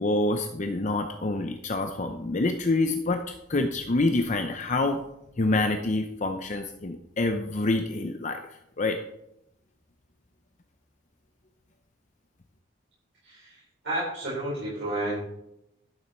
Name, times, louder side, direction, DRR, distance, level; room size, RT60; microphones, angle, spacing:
voice 1, 0.0-5.0 5.4-8.4 8.8-9.0, left 2 dB, 40° left, 6 dB, 0.7 m, -27 dB
voice 2, 13.2-15.2, right 1 dB, 65° right, -9 dB, 4.8 m, -31 dB
12.0 x 7.1 x 4.4 m, 0.82 s
head